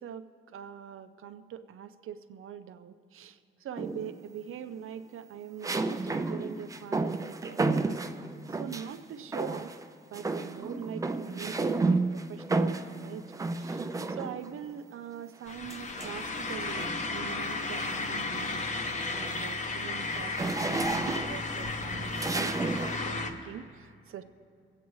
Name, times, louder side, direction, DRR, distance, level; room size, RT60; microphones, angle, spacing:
voice 1, 0.0-8.0 8.5-9.7 10.1-13.2 13.5-18.7 19.1-24.2, right 9 dB, 80° right, 11 dB, 0.5 m, -43 dB
sound 1, 3.8-4.3 5.6-9.0 9.3-9.9 10.1-14.6 15.7-17.1 17.6-17.9 18.2-23.0, right 3 dB, 15° right, 0.3 m, -32 dB
sound 2, 15.5-23.3, left 3 dB, 35° left, 0.7 m, -34 dB
24.0 x 8.4 x 3.1 m, 2.2 s
wide cardioid pair, 170°, 21 cm